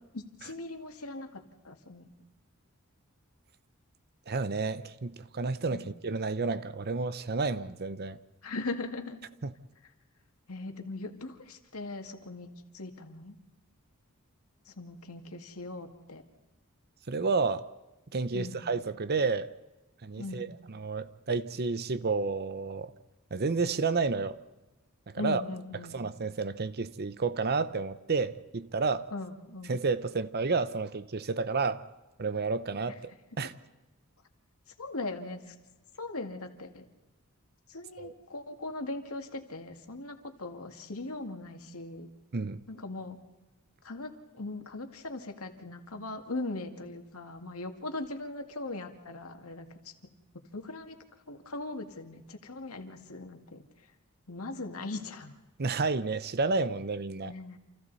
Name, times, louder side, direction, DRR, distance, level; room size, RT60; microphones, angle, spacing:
voice 1, 0.1-2.1 5.7-5.9 8.4-9.2 10.5-13.4 14.7-16.2 18.3-18.6 20.2-20.5 25.2-26.0 29.1-29.8 33.3-33.4 34.8-35.5 36.0-36.9 37.7-42.1 42.7-43.2 43.8-49.9 50.5-51.0 51.3-53.7 54.3-55.3 57.2-57.6, left 2 dB, 75° left, 2.2 m, -39 dB
voice 2, 4.3-8.2 9.4-9.5 17.1-17.7 18.1-19.5 20.0-22.9 23.3-24.4 25.1-25.4 25.9-29.1 29.7-31.8 32.2-33.1 33.4-33.5 38.0-38.1 42.3-42.6 55.6-57.3, right 4 dB, 45° right, 0.7 m, -30 dB
29.0 x 28.0 x 4.1 m
head